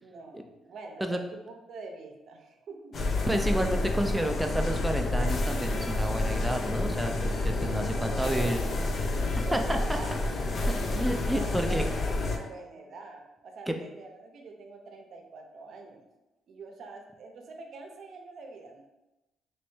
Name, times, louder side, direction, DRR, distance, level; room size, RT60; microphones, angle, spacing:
voice 1, 0.0-3.1 7.7-8.8 9.3-10.2 11.3-16.1 16.5-18.8, right 3 dB, 65° right, 3 dB, 0.6 m, -44 dB
sound 1, 2.9-12.4, left 2 dB, 50° left, 0.5 m, -29 dB
voice 2, 3.3-8.6 9.5-9.8 10.9-11.8 13.7-13.8, right 1 dB, 5° right, 5 dB, 0.4 m, -30 dB
Bowed string instrument, 7.2-13.0, equal, 25° right, 0.8 m, -55 dB
3.2 x 3.0 x 3.1 m, 0.99 s
cardioid pair, 90°, 0 cm